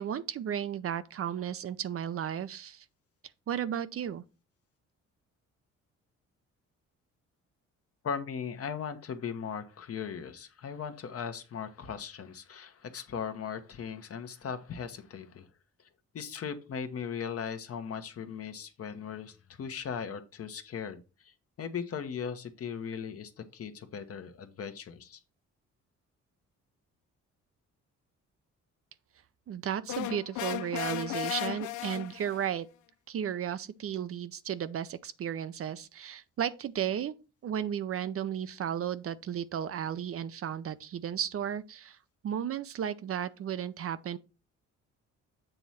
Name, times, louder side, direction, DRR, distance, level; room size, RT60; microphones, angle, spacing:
voice 1, 0.0-2.8 3.5-4.2 29.5-32.7 33.1-37.1 37.4-42.0 42.2-44.2, right 9 dB, 50° right, 0.5 m, -34 dB
voice 2, 8.0-15.5 16.1-25.2, left 7 dB, 50° left, 1.0 m, -38 dB
sound 1, 29.9-32.5, left 15 dB, 75° left, 0.5 m, -35 dB
7.8 x 3.1 x 5.6 m
cardioid pair, 90°, 30 cm